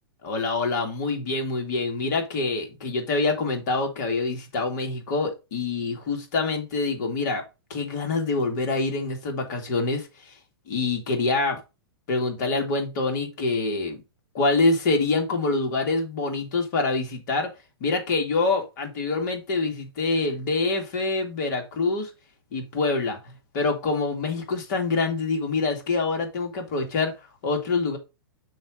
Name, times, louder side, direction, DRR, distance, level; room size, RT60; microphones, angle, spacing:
voice 1, 0.2-7.4 7.7-10.3 10.7-11.6 12.1-14.0 14.3-17.5 17.8-22.1 22.5-23.2 23.5-27.1 27.4-28.0, left 3 dB, 55° left, 2.7 m, -25 dB
6.4 x 4.6 x 5.1 m
hypercardioid pair, 130°, 12 cm